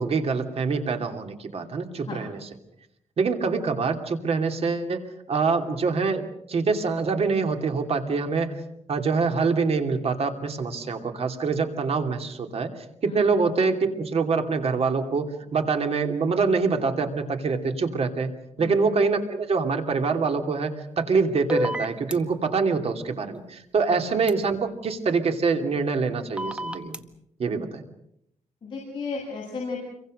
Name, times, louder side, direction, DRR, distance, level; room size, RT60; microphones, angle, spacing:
voice 1, 0.0-2.5 3.2-8.6 8.9-12.7 13.0-18.3 18.6-27.0 27.4-27.8, right 4 dB, 55° right, 6 dB, 2.9 m, -25 dB
sound 1, 21.5-22.1 24.3-24.4 26.4-27.0, equal, 10° right, 1.6 m, -28 dB
voice 2, 28.6-29.8, left 4 dB, 40° left, -2 dB, 7.9 m, -33 dB
28.5 x 23.5 x 6.6 m, 0.77 s
wide cardioid pair, 130°, 13 cm